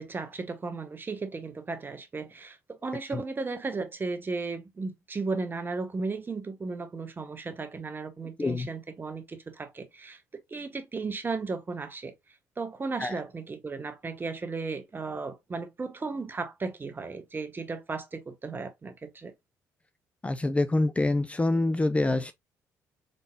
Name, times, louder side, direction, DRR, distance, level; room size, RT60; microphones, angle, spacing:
voice 1, 0.0-10.2 10.5-12.1 12.6-19.3, right 4 dB, 30° right, 1.1 m, -35 dB
voice 2, 20.2-22.3, left 2 dB, 20° left, 0.5 m, -26 dB
3.9 x 3.6 x 2.2 m
supercardioid pair, 65°, 7 cm